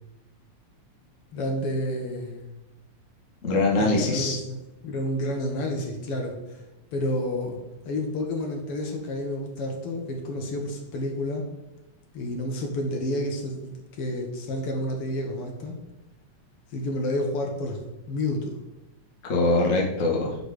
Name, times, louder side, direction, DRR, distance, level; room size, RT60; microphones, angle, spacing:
voice 1, 1.3-2.4 3.8-4.6 4.8-6.4 6.9-7.6 7.8-11.4 12.1-15.8 16.7-17.8 18.1-18.6, left 1 dB, 60° left, 2 dB, 1.7 m, -30 dB
voice 2, 3.4-4.4 19.2-20.4, left 2 dB, 40° left, -1 dB, 1.2 m, -23 dB
10.0 x 4.1 x 4.9 m, 0.96 s
omnidirectional pair, 3.4 m